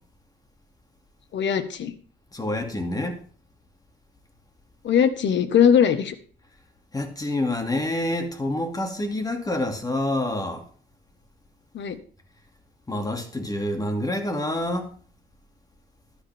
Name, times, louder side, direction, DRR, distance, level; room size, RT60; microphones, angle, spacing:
voice 1, 1.3-1.9 4.8-6.1 11.7-12.0, left 8 dB, 65° left, 1.5 m, -20 dB
voice 2, 2.3-3.2 6.9-10.6 12.9-14.9, left 1 dB, 20° left, 2.6 m, -27 dB
12.5 x 12.0 x 3.6 m
cardioid pair, 90°, 20 cm